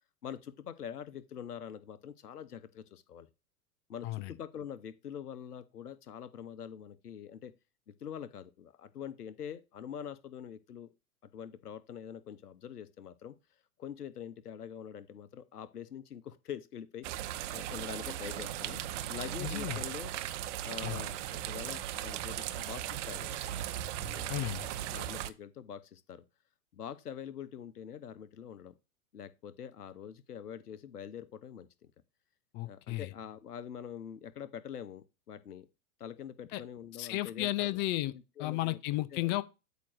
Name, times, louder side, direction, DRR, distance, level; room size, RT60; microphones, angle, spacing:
voice 1, 0.2-3.3 3.9-7.5 7.9-10.9 11.3-13.4 13.8-18.8 19.1-20.1 20.6-23.4 24.0-26.2 26.7-28.7 29.1-31.9 32.6-35.7 36.0-37.8 38.1-38.8 39.1-39.4, left 8 dB, 80° left, 0.9 m, -45 dB
voice 2, 4.0-4.3 19.4-19.8 20.8-21.0 24.3-24.7 32.5-33.1 36.5-36.6 37.0-38.1 38.4-39.4, left 17 dB, 25° left, 0.4 m, -33 dB
sound 1, 17.0-25.3, right 12 dB, 55° right, 0.8 m, -37 dB
8.3 x 2.9 x 6.2 m
figure-of-eight pair, 100°, 45 cm